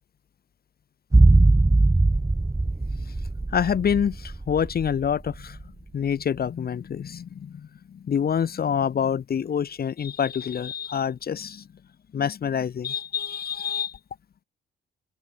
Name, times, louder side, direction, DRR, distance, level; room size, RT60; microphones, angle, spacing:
sound 1, 1.1-5.4 5.6-5.7, right 2 dB, 15° right, 6.1 m, -20 dB
voice 1, 3.5-5.6 5.9-11.7 12.1-14.0, left 8 dB, 50° left, 2.2 m, -27 dB
cardioid pair, 90°, 20 cm